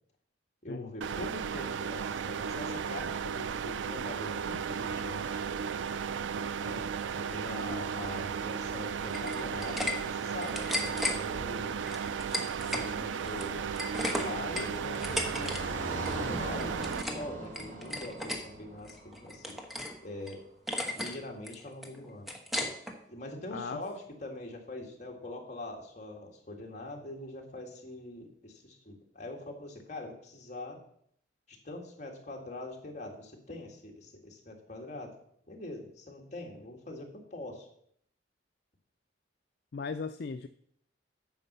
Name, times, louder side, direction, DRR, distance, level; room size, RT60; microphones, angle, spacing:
voice 1, 0.6-5.6 6.6-11.9 12.7-13.7 14.0-15.6 16.2-19.6 20.0-20.4 21.0-22.3 23.1-30.8 31.5-35.1 35.5-37.7, left 2 dB, 40° left, 1 dB, 2.1 m, -43 dB
sound 1, 1.0-17.0, right 6 dB, 85° right, 0.4 m, -35 dB
sound 2, 9.1-9.9 10.3-11.2 11.9-12.9 13.2-15.6 15.9-16.2 16.6-17.3 17.5-18.4 18.9-20.0 20.3-20.4 20.7-21.2 21.5-22.9, left 1 dB, ahead, 1.1 m, -35 dB
Car passing by, 13.2-20.1, right 1 dB, 45° right, 4.2 m, -42 dB
voice 2, 23.5-23.8 39.7-40.5, left 4 dB, 60° left, 10 dB, 0.4 m, -37 dB
9.3 x 5.4 x 6.8 m, 0.67 s
head